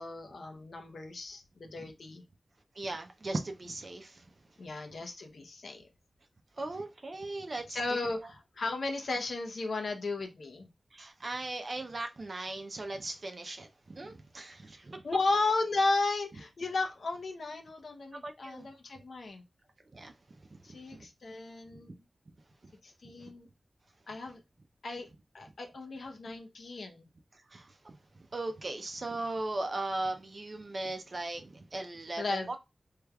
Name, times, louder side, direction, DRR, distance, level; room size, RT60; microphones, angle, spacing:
voice 1, 0.0-2.2 4.6-5.9 7.7-10.7 15.0-19.4 20.6-22.0 22.8-23.5 24.1-24.4 24.8-25.1 25.3-27.1 32.2-32.6, left 3 dB, 80° left, 0.8 m, -34 dB
voice 2, 2.7-4.6 6.5-8.0 10.9-15.0 18.1-18.7 19.9-21.1 21.9-22.0 22.6-22.7 23.2-23.3 27.3-32.6, right 2 dB, 50° right, 0.5 m, -39 dB
3.4 x 3.3 x 2.3 m
wide cardioid pair, 100°, 0 cm